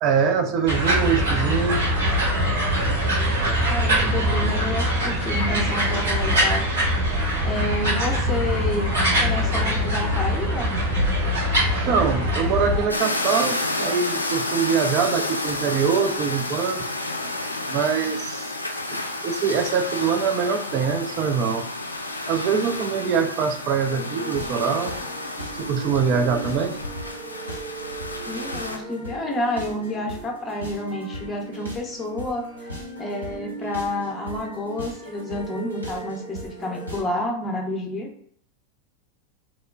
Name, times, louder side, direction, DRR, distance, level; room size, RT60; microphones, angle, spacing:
voice 1, 0.0-1.8 11.8-16.9 17.7-18.5 18.9-21.7 22.3-25.0 25.6-26.8, right 6 dB, 40° right, 7 dB, 0.3 m, -23 dB
sound 1, 0.7-12.8, equal, 70° right, 1.5 m, -22 dB
voice 2, 3.4-6.6 7.4-8.9 9.2-10.7 28.3-32.7 33.0-38.1, left 1 dB, 15° left, 1 dB, 0.6 m, -29 dB
sound 2, 12.9-28.8, left 2 dB, 85° left, 0.4 m, -30 dB
sound 3, 23.9-37.0, right 2 dB, 85° right, 0.8 m, -37 dB
2.9 x 2.2 x 2.3 m, 0.62 s
figure-of-eight pair, 85°, 0 cm